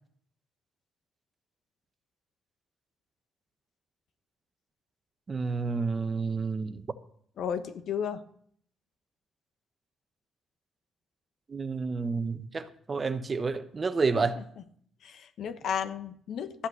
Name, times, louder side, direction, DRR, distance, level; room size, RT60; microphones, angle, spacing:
voice 1, 5.3-6.9 11.5-14.4, right 4 dB, 35° right, 1.0 m, -30 dB
voice 2, 7.4-8.2 15.0-16.7, left 8 dB, 70° left, 1.1 m, -33 dB
13.0 x 8.2 x 6.4 m
cardioid pair, 90°, 0 cm